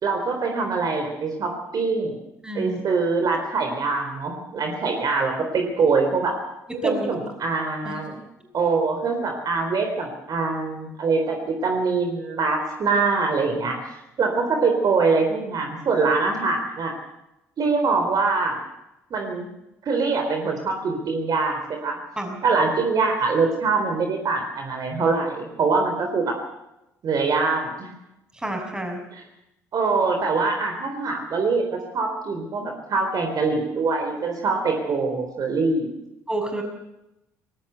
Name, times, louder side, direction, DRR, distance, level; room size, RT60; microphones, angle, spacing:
voice 1, 0.0-2.2 2.5-6.3 6.8-8.2 8.5-13.8 14.2-16.9 17.6-18.6 19.1-19.5 19.8-22.0 22.4-26.3 27.0-27.9 29.1-29.2 29.7-35.9, right 4 dB, 45° right, 3 dB, 4.1 m, -23 dB
voice 2, 2.4-2.8 6.8-7.1 7.8-7.9 22.2-22.4 28.4-29.0 36.3-36.6, right 1 dB, 10° right, 4 dB, 6.7 m, -28 dB
19.5 x 18.0 x 8.2 m, 0.88 s
hypercardioid pair, 50°, 9 cm